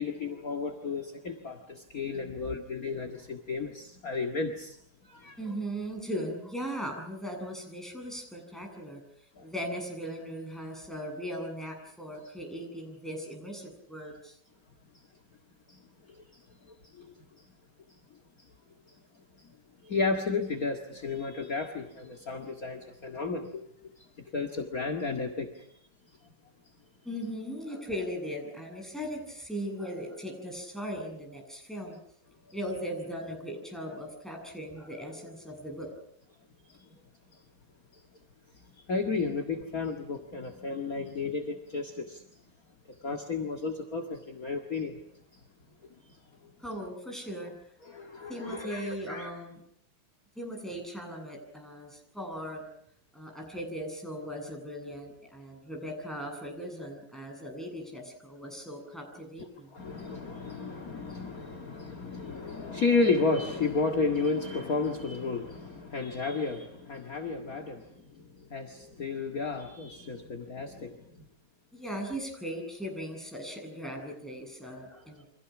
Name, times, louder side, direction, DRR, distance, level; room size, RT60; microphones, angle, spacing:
voice 1, 0.0-4.8 5.0-5.4 9.4-9.5 15.7-17.1 18.4-18.5 19.4-19.6 19.8-23.6 24.0-25.7 36.7-36.9 37.3-37.4 37.9-38.0 38.5-42.2 42.9-45.0 45.3-45.4 46.1-46.2 47.9-49.3 59.7-71.1, left 4 dB, 40° left, 3 dB, 2.3 m, -33 dB
voice 2, 5.4-9.0 9.4-14.4 27.0-32.0 32.5-35.9 46.6-47.6 48.3-49.6 50.4-52.7 53.1-59.7 71.7-75.3, equal, ahead, 2 dB, 7.9 m, -38 dB
29.5 x 26.0 x 6.1 m, 0.68 s
omnidirectional pair, 2.4 m